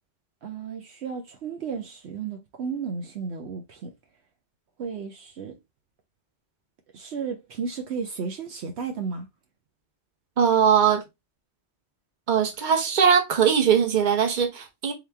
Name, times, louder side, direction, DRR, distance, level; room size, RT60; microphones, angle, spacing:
voice 1, 0.4-3.9 4.8-5.6 6.9-9.3, right 5 dB, 70° right, 0.9 m, -33 dB
voice 2, 10.4-11.0 12.3-14.9, right 7 dB, 45° right, 1.0 m, -20 dB
3.7 x 3.0 x 3.3 m
omnidirectional pair, 1.2 m